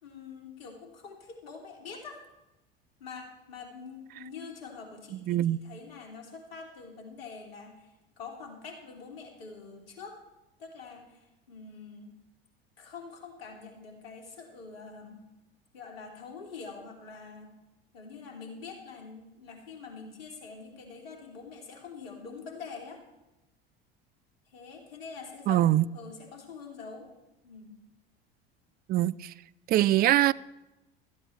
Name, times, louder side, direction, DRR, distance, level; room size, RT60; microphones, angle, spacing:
voice 1, 0.0-2.2 3.0-10.2 10.6-12.2 12.8-15.3 15.7-17.5 17.9-23.0 24.5-27.1 27.4-27.8, left 5 dB, 70° left, 2.9 m, -45 dB
voice 2, 5.3-5.6 25.5-25.8 28.9-29.3 29.7-30.3, right 14 dB, 30° right, 0.4 m, -23 dB
16.5 x 13.0 x 3.2 m
figure-of-eight pair, 70°, 30 cm